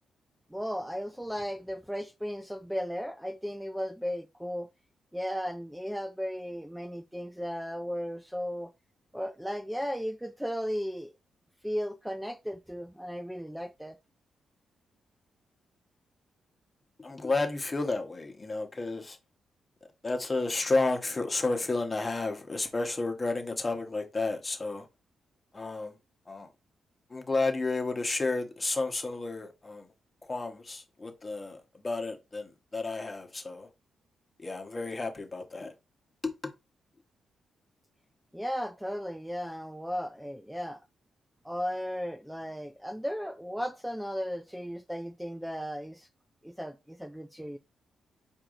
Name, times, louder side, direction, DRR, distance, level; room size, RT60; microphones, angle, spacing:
voice 1, 0.5-4.7 5.1-8.7 9.1-11.1 11.6-14.0 38.3-40.8 41.4-46.1 46.4-47.6, equal, 5° right, 0.4 m, -35 dB
voice 2, 17.0-19.2 20.0-24.8 25.5-25.9 26.3-26.5 27.1-29.9 30.3-33.7 34.4-35.7 36.2-36.3, left 3 dB, 25° left, 1.2 m, -31 dB
4.7 x 2.7 x 3.8 m
cardioid pair, 85°, 0 cm